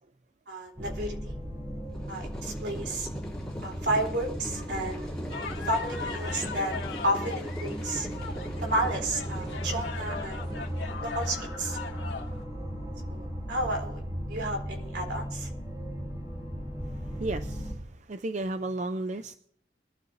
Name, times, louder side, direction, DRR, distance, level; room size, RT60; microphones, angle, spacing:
voice 1, 0.5-1.4 2.1-3.1 3.6-5.1 5.6-6.7 7.0-8.1 8.6-10.4 11.0-11.8 13.1-14.0 14.3-15.5, right 1 dB, 70° right, 1 dB, 3.5 m, -31 dB
sound 1, 0.8-17.7, equal, 20° right, 4.0 m, -37 dB
sound 2, 1.9-11.0, equal, 5° left, 5.4 m, -41 dB
sound 3, 5.3-12.4, left 5 dB, 90° left, 2.0 m, -40 dB
voice 2, 17.2-17.7 18.1-19.4, right 2 dB, 40° right, 9 dB, 0.5 m, -33 dB
23.0 x 12.0 x 2.7 m, 0.63 s
head